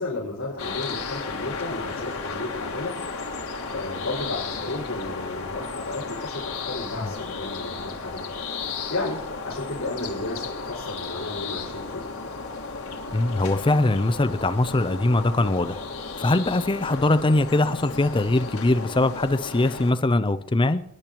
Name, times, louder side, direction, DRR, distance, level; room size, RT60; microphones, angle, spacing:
voice 1, 0.0-3.0 3.7-8.3 8.9-12.0, left 2 dB, 65° left, 5.3 m, -33 dB
sound 1, 0.6-19.9, left 4 dB, 80° left, 1.8 m, -34 dB
voice 2, 13.1-15.8 16.2-20.8, left 2 dB, 25° left, 0.5 m, -22 dB
25.0 x 10.5 x 3.0 m
head